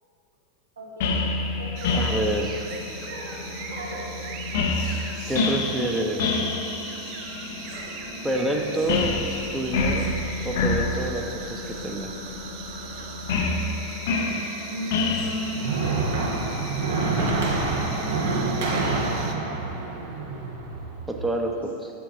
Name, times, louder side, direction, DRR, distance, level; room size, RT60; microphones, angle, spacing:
voice 1, 0.8-1.2 1.6-2.1 2.7-4.5 4.7-4.9 5.7-6.4 7.7-8.0 12.8-12.9 14.7-15.8 16.9-19.6 21.5-21.7, equal, 85° right, -4 dB, 1.3 m, -36 dB
sound 1, 1.0-18.3, left 3 dB, 65° left, 0.5 m, -29 dB
sound 2, 1.8-19.4, right 7 dB, 50° right, 0.4 m, -41 dB
voice 2, 1.9-2.6 5.3-6.2 8.2-9.2 9.5-10.1 10.4-12.1 21.1-21.5 21.8-21.9, right 1 dB, 10° right, 2 dB, 0.7 m, -27 dB
sound 3, 15.1-21.3, right 3 dB, 65° right, 0.9 m, -27 dB
7.0 x 4.5 x 3.8 m, 2.6 s
hypercardioid pair, 90°, 0 cm